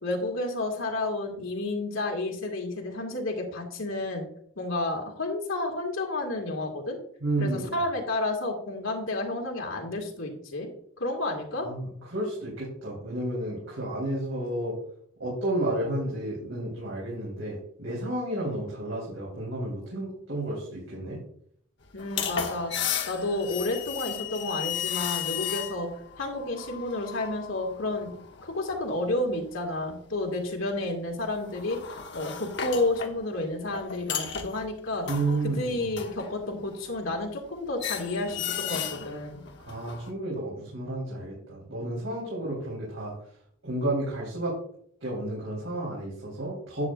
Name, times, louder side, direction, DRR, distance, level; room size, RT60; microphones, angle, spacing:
voice 1, 0.0-4.2 4.6-7.0 7.4-10.7 11.0-11.7 21.9-22.7 23.1-25.9 26.2-28.1 28.4-35.1 35.4-39.4, left 2 dB, 85° left, 1 dB, 2.2 m, -31 dB
voice 2, 7.2-7.7 11.6-14.7 15.2-21.2 35.1-35.8 39.6-43.1 43.6-44.5 45.0-46.8, right 1 dB, 90° right, -6 dB, 4.0 m, -31 dB
sound 1, 21.8-29.9 30.2-30.4 31.2-37.5 37.8-40.1, left 8 dB, 60° left, 1.0 m, -35 dB
10.5 x 8.6 x 2.6 m, 0.64 s
head